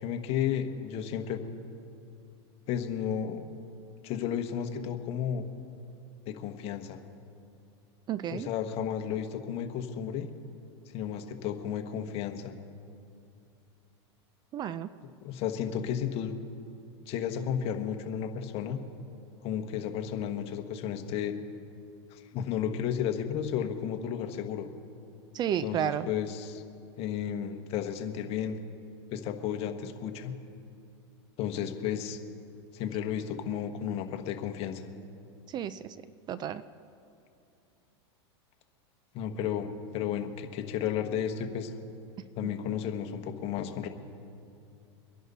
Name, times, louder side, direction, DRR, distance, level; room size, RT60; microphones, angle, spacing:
voice 1, 0.0-1.4 2.7-3.4 4.0-5.5 6.3-7.0 8.3-10.3 10.9-12.6 15.2-16.4 17.1-18.8 19.4-21.3 22.1-24.7 25.6-26.6 27.0-28.6 29.1-30.3 31.4-32.2 32.7-34.8 39.1-39.7 39.9-41.7 42.4-43.9, left 9 dB, 45° left, 6 dB, 1.3 m, -33 dB
voice 2, 8.1-8.5 14.5-14.9 25.3-26.1 35.5-36.0 36.3-36.6, right 10 dB, 30° right, 15 dB, 0.4 m, -32 dB
24.0 x 11.0 x 4.1 m, 2.5 s
hypercardioid pair, 120°, 14 cm